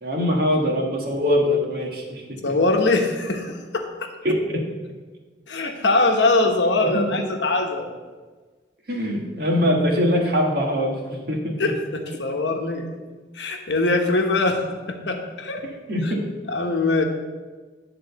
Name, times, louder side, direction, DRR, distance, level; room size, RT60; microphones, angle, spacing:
voice 1, 0.0-2.4 4.2-4.6 6.8-7.0 8.9-11.7 15.9-16.2, equal, 55° right, 0 dB, 1.5 m, -22 dB
voice 2, 2.4-4.1 5.5-7.9 11.6-12.9 13.3-15.6 16.0-16.1 16.5-17.0, left 2 dB, 70° left, 3 dB, 1.0 m, -22 dB
10.5 x 3.8 x 6.8 m, 1.4 s
head